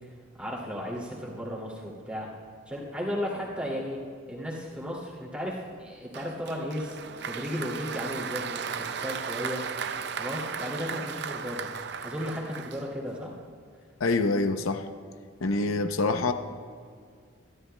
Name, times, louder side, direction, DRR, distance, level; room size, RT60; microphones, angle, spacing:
voice 1, 0.3-2.3 2.7-9.6 10.2-11.7 12.0-13.3, equal, 5° right, -4 dB, 2.4 m, -35 dB
Applause, 6.1-13.2, right 6 dB, 55° right, 0.5 m, -36 dB
voice 2, 14.0-14.9 15.4-16.3, left 3 dB, 85° left, 8 dB, 0.6 m, -26 dB
25.5 x 12.5 x 2.2 m, 2.1 s
head